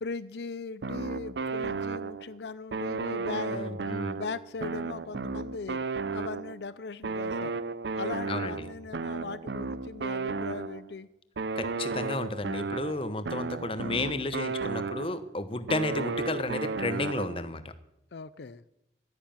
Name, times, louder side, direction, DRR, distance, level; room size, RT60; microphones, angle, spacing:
voice 1, 0.0-3.8 4.1-5.8 6.1-7.6 7.9-11.1 18.1-18.6, left 4 dB, 75° left, 15 dB, 0.5 m, -39 dB
sound 1, 0.8-2.4 2.7-6.7 7.0-10.9 11.4-15.3 15.7-17.5, right 4 dB, 80° right, 0.6 m, -34 dB
voice 2, 3.5-4.2 8.3-8.7 11.5-17.7, left 2 dB, 30° left, 11 dB, 0.9 m, -32 dB
12.5 x 10.5 x 8.7 m, 0.87 s
head